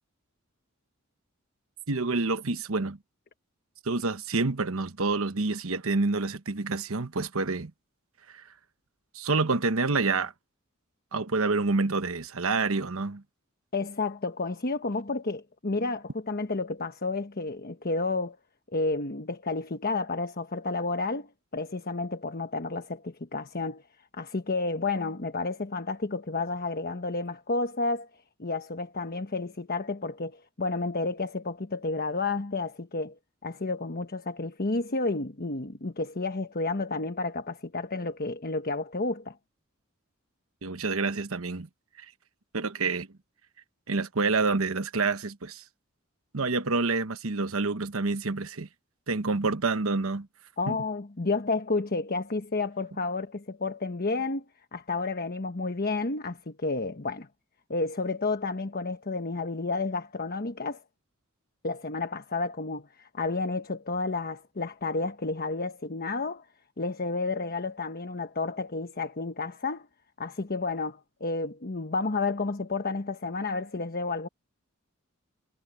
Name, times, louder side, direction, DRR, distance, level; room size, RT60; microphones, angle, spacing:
voice 1, 1.9-3.0 3.8-7.7 8.3-8.5 9.1-10.3 11.1-13.2 40.6-41.7 42.0-42.1 42.5-43.1 43.9-45.6 46.3-48.7 49.1-50.3 50.7-50.8, right 3 dB, 70° right, 1.1 m, -28 dB
voice 2, 13.7-18.4 18.7-23.8 24.1-28.1 28.4-33.2 33.4-39.4 50.6-54.4 54.7-57.3 57.7-60.8 61.6-66.4 66.8-69.9 70.2-74.3, left 3 dB, 45° left, 1.2 m, -31 dB
head